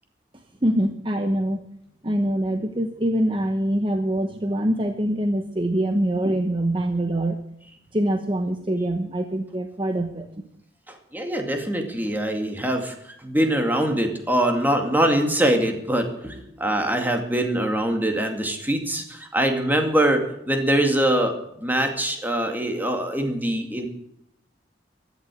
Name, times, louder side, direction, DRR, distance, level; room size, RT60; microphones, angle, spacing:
voice 1, 0.6-1.6 2.0-7.4 7.9-10.5, right 1 dB, 30° right, 6 dB, 1.0 m, -24 dB
voice 2, 10.9-23.9, right 1 dB, 10° right, 4 dB, 2.3 m, -23 dB
15.5 x 11.5 x 6.3 m, 0.76 s
head